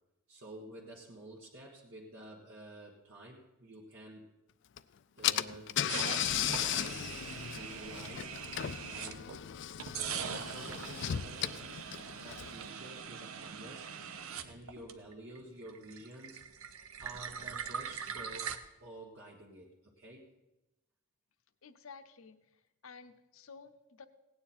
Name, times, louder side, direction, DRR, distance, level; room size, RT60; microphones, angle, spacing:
voice 1, 0.3-4.3 5.2-7.0 7.5-8.3 8.9-9.3 9.9-11.8 12.1-13.9 14.4-16.4 17.0-20.3, right 1 dB, 65° right, -3 dB, 1.5 m, -50 dB
Car / Engine, 4.8-4.9 5.2-12.7, left 11 dB, 60° left, 0.4 m, -36 dB
sound 1, 5.9-9.4 9.8-15.4 15.6-18.6, right 7 dB, 90° right, 0.8 m, -42 dB
voice 2, 21.6-24.1, left 5 dB, 80° left, 11 dB, 0.8 m, -53 dB
16.5 x 9.4 x 4.3 m, 1.0 s
head